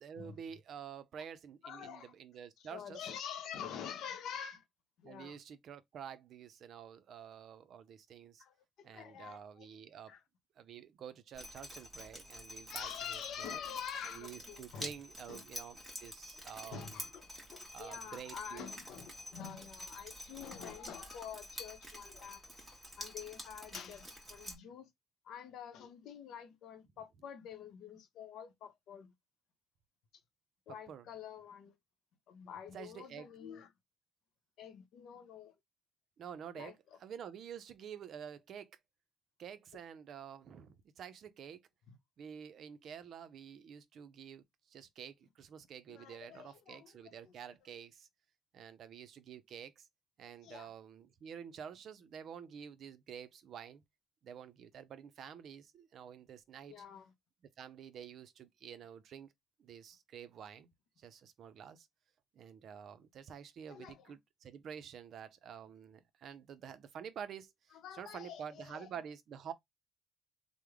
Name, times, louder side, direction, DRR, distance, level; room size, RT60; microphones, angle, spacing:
voice 1, 0.0-3.0 5.0-8.4 8.8-10.2 10.6-13.6 14.0-17.0 17.7-18.7 30.9-31.1 32.7-33.3 36.2-38.8 39.4-41.6 42.2-48.1 48.5-49.9 50.2-53.8 54.2-56.7 57.6-59.3 59.6-60.7 61.0-61.9 62.3-69.5, right 8 dB, 55° right, 0.5 m, -49 dB
voice 2, 1.6-2.1 2.6-4.6 5.0-5.4 8.4-9.7 10.1-10.2 12.7-14.9 15.3-15.4 16.3-22.4 23.0-24.9 25.2-29.1 30.7-31.7 32.3-33.7 34.6-35.5 36.5-36.7 41.9-42.0 45.9-47.3 50.4-50.7 56.7-57.1 63.7-64.1 67.7-68.9, left 8 dB, 70° left, 0.7 m, -47 dB
Drip, 11.3-24.5, equal, 10° right, 1.3 m, -49 dB
3.1 x 2.0 x 3.5 m
cardioid pair, 130°, 0 cm